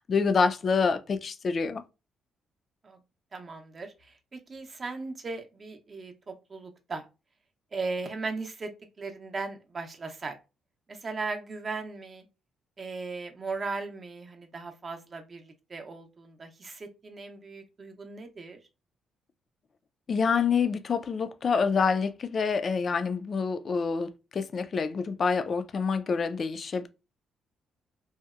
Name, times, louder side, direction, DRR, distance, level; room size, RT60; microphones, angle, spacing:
voice 1, 0.1-1.8 20.1-26.9, left 5 dB, 45° left, 0.3 m, -27 dB
voice 2, 3.3-7.1 7.7-8.7 9.0-10.4 10.9-12.2 12.8-18.6, right 3 dB, 35° right, 0.6 m, -37 dB
2.7 x 2.1 x 2.4 m
cardioid pair, 90°, 0 cm